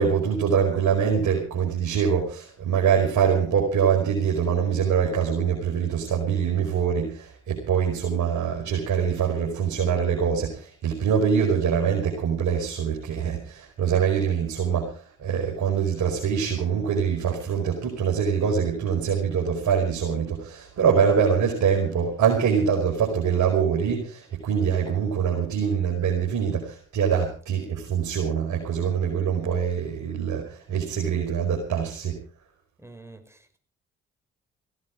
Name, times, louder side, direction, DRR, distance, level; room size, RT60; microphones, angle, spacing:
voice 1, 0.0-32.2, right 7 dB, 65° right, -2 dB, 5.4 m, -24 dB
voice 2, 32.8-33.6, right 2 dB, 10° right, 8 dB, 5.3 m, -47 dB
17.5 x 17.0 x 4.9 m, 0.41 s
hypercardioid pair, 45°, 32 cm